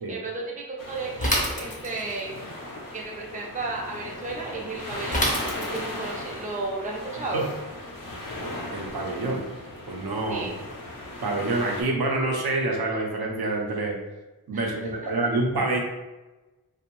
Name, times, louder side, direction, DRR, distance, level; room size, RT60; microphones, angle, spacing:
voice 1, 0.1-2.4 2.9-7.5 10.3-10.5 14.5-14.9, right 3 dB, 20° right, -2 dB, 0.5 m, -33 dB
sound 1, 0.8-11.8, left 1 dB, 60° left, 0.6 m, -37 dB
Bicycle / Mechanisms, 1.2-2.2 5.1-6.0, equal, 20° left, 0.6 m, -26 dB
voice 2, 8.7-9.4 9.9-10.5 11.2-14.0 14.5-15.8, right 2 dB, 70° right, -1 dB, 0.6 m, -27 dB
2.5 x 2.0 x 2.9 m, 1.1 s
wide cardioid pair, 85°, 39 cm